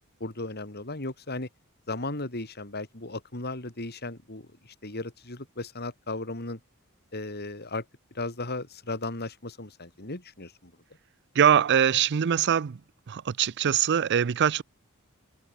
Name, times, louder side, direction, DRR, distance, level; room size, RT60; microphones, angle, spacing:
voice 1, 0.2-1.5 1.9-6.6 7.1-7.9 8.1-10.7, left 2 dB, 50° left, 3.6 m, -36 dB
voice 2, 11.4-12.8 13.1-14.6, right 8 dB, 55° right, 0.4 m, -23 dB
head